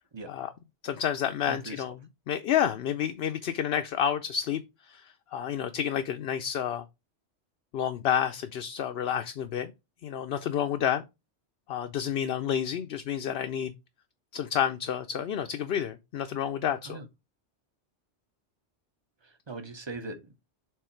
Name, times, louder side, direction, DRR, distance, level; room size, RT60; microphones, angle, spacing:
voice 1, 0.8-1.9 2.3-4.6 4.9-6.8 7.7-9.7 10.0-11.0 11.7-13.7 14.3-17.0, left 9 dB, 65° left, 0.8 m, -29 dB
voice 2, 1.5-1.8 16.8-17.0 19.2-20.5, right 3 dB, 25° right, 0.9 m, -40 dB
6.7 x 3.8 x 4.5 m
omnidirectional pair, 1.2 m